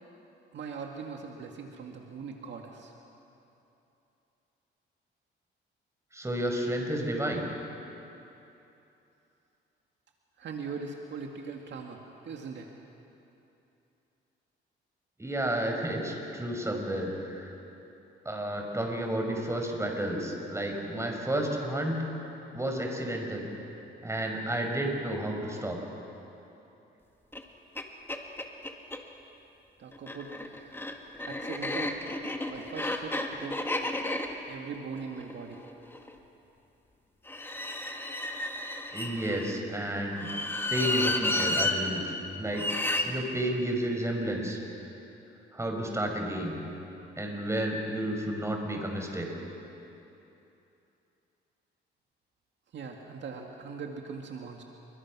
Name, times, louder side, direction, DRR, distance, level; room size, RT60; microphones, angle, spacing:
voice 1, 0.5-2.9 10.4-12.7 29.8-30.8 31.2-32.0 32.5-33.6 34.5-35.6 52.7-54.6, right 5 dB, 65° right, 2 dB, 2.1 m, -40 dB
voice 2, 6.1-7.5 15.2-17.5 18.3-22.0 22.5-23.5 24.0-25.8 38.9-40.3 40.7-42.7 43.1-44.6 45.5-46.6 47.2-49.3, right 1 dB, 15° right, 2 dB, 5.2 m, -31 dB
sound 1, 27.3-27.4 27.8-27.9 28.1-29.0 29.9-36.1 37.3-39.5 40.2-41.8 42.5-43.1, left 1 dB, 10° left, 2.1 m, -32 dB
28.0 x 23.5 x 6.2 m, 2.9 s
cardioid pair, 90°, 20 cm